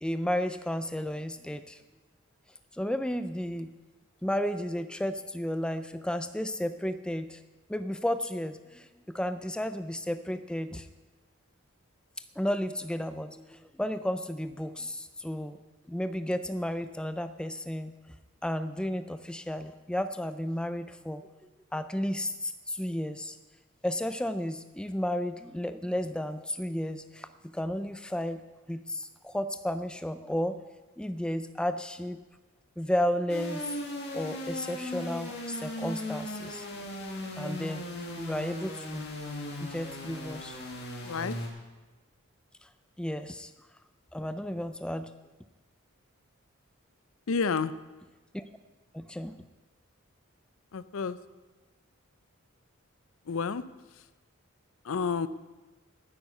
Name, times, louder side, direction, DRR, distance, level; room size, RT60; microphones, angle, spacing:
voice 1, 0.0-1.8 2.7-3.7 4.2-7.4 7.7-10.9 12.2-15.6 15.9-18.0 18.4-21.3 21.7-23.4 23.8-28.4 28.7-30.6 31.0-32.2 32.8-33.7 34.1-36.7 37.4-37.8 38.2-39.0 39.6-40.6 42.6-42.7 43.0-43.5 44.1-45.1 48.3-48.4 48.9-49.3, left 1 dB, 5° left, 11 dB, 0.3 m, -33 dB
sound 1, 33.3-41.5, left 1 dB, 50° left, 1.9 m, -38 dB
voice 2, 47.3-47.7 50.7-51.2 53.3-53.6 54.9-55.3, left 5 dB, 70° left, 15 dB, 0.5 m, -29 dB
9.6 x 9.5 x 8.0 m, 1.2 s
head